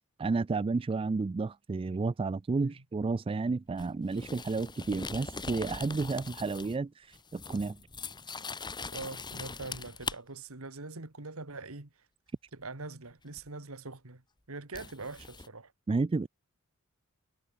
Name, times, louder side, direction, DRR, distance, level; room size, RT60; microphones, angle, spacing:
voice 1, 0.2-7.8 15.9-16.3, right 3 dB, 25° right, 0.3 m, -31 dB
sound 1, 3.8-6.8 7.1-10.2 13.4-13.5 14.7-15.5, left 4 dB, 20° left, 1.7 m, -41 dB
voice 2, 8.9-11.9 12.5-14.2 14.5-15.7, right 3 dB, 70° right, 2.1 m, -43 dB
head